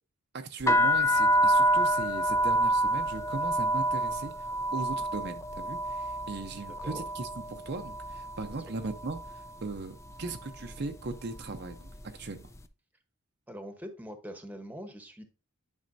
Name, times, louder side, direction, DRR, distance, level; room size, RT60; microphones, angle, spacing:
voice 1, 0.3-12.5, right 3 dB, 50° right, 6 dB, 0.6 m, -38 dB
sound 1, 0.6-8.5 8.8-9.5 10.1-10.4 10.6-12.1, right 1 dB, 15° left, 0.4 m, -28 dB
voice 2, 13.5-15.2, equal, 10° right, 6 dB, 1.0 m, -43 dB
10.5 x 5.5 x 2.6 m, 0.30 s
head